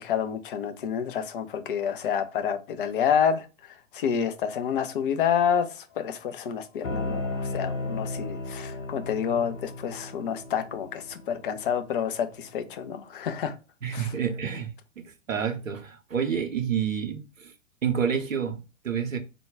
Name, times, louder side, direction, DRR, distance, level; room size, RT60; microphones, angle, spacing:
voice 1, 0.0-13.5 13.9-14.1, left 8 dB, 45° left, 0.6 m, -28 dB
sound 1, 6.8-12.4, left 2 dB, 75° left, 0.8 m, -35 dB
voice 2, 13.8-17.5 17.8-19.2, right 7 dB, 80° right, 0.8 m, -29 dB
3.7 x 2.2 x 3.6 m
figure-of-eight pair, 105°, 39 cm